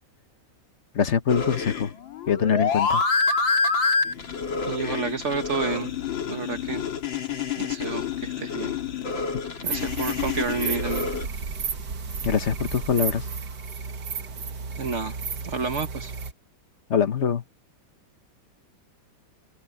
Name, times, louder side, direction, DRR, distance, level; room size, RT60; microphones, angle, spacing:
voice 1, 0.9-1.9 2.3-3.0 12.2-13.2 16.9-17.4, left 7 dB, 40° left, 1.2 m, -23 dB
sound 1, 1.3-11.3, left 5 dB, 70° left, 3.2 m, -27 dB
voice 2, 4.7-5.9 6.3-6.8 7.6-8.7 9.6-11.1 14.8-15.2 15.4-16.1, right 4 dB, 40° right, 1.6 m, -30 dB
sound 2, 9.6-16.3, right 5 dB, 60° right, 2.1 m, -33 dB
omnidirectional pair, 2.2 m